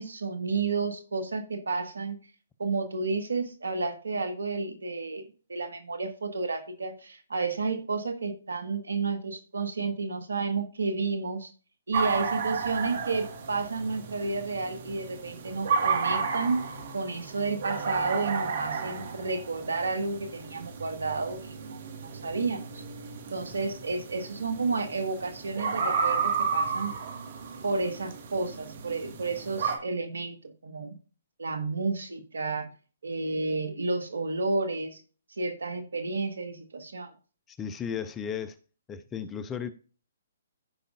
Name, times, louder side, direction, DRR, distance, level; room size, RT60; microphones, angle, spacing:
voice 1, 0.0-2.2 2.6-11.5 11.9-16.7 16.9-22.8 23.3-26.9 27.6-30.9 31.4-32.7 33.0-35.0 35.4-37.1, right 3 dB, 80° right, 1.5 m, -31 dB
sound 1, 11.9-29.8, right 5 dB, 55° right, 1.6 m, -33 dB
voice 2, 37.5-38.5 38.9-39.7, left 7 dB, 15° left, 0.7 m, -35 dB
14.5 x 5.1 x 2.5 m
hypercardioid pair, 135°, 0 cm